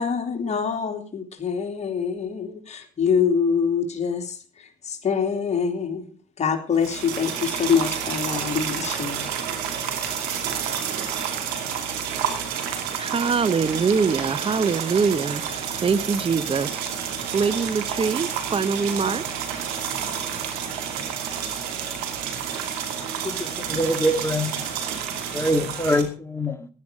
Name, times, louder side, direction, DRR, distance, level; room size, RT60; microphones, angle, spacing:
voice 1, 0.0-6.1 6.4-9.2, left 6 dB, 50° left, 3 dB, 3.1 m, -25 dB
sound 1, 6.7-26.0, right 8 dB, 90° right, 2.6 m, -30 dB
voice 2, 12.8-16.9 17.3-19.2, right 5 dB, 40° right, 15 dB, 1.2 m, -24 dB
voice 3, 23.2-24.6 25.3-26.7, equal, 15° left, 9 dB, 2.2 m, -24 dB
15.0 x 10.5 x 5.0 m, 0.40 s
supercardioid pair, 55°, 15 cm